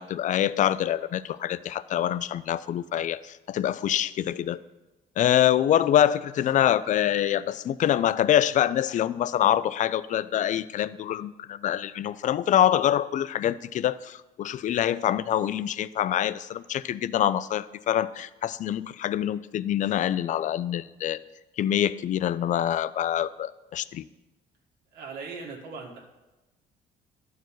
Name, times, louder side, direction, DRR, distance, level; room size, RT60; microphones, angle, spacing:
voice 1, 0.0-4.6 5.2-21.2 21.6-24.0, left 11 dB, 50° left, 17 dB, 0.4 m, -25 dB
voice 2, 24.9-26.0, right 4 dB, 80° right, 0 dB, 1.7 m, -39 dB
11.5 x 4.7 x 6.2 m, 1.1 s
cardioid pair, 110°, 17 cm